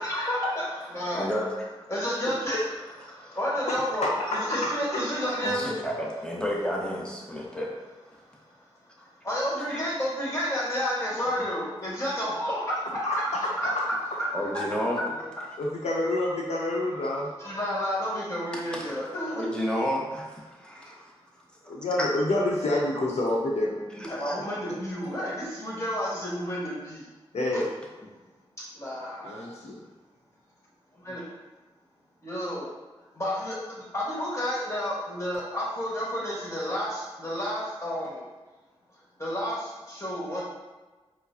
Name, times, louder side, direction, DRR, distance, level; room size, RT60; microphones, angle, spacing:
voice 1, 0.0-1.2 1.9-2.6 3.1-5.7 9.2-13.9 17.4-19.4 24.1-27.1 27.5-27.6 28.7-29.5 31.0-31.2 32.2-32.6 33.1-38.2 39.2-40.4, equal, 25° left, -6 dB, 1.5 m, -31 dB
voice 2, 1.1-1.7 3.1-3.3 5.4-7.7 9.0-9.1 9.7-10.0 11.2-11.5 14.3-15.0 18.5-18.9 19.2-21.1 21.6-22.1 24.0-24.4, equal, 10° left, -2 dB, 0.9 m, -32 dB
voice 3, 15.6-17.3 21.6-23.8 27.3-27.7 29.2-29.8, left 1 dB, 80° left, -3 dB, 0.8 m, -27 dB
4.6 x 2.1 x 2.7 m, 1.2 s
cardioid pair, 45°, 11 cm